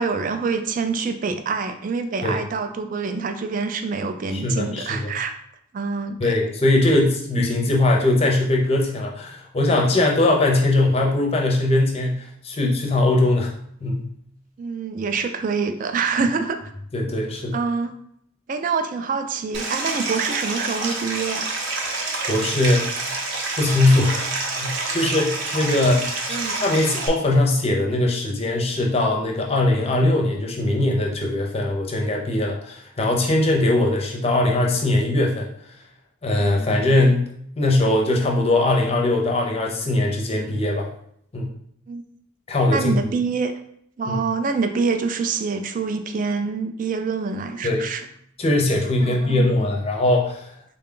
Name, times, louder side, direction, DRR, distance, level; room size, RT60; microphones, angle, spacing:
voice 1, 0.0-5.3 5.7-6.3 14.6-16.6 17.5-17.9 18.5-21.6 24.9-25.1 26.3-26.6 36.4-36.7 41.9-42.0 42.7-43.5 44.0-48.0 49.0-49.5, right 4 dB, 40° right, 8 dB, 0.3 m, -26 dB
voice 2, 4.3-5.1 6.2-13.5 13.8-14.1 16.9-17.6 22.3-23.0 23.6-24.3 24.6-35.5 36.2-40.9 41.3-41.5 42.5-42.9 44.1-44.2 47.6-47.9 48.4-50.4, left 2 dB, 30° left, 0 dB, 0.6 m, -21 dB
Stream, 19.5-27.1, right 3 dB, 60° right, 0.7 m, -28 dB
3.8 x 2.3 x 3.7 m, 0.68 s
head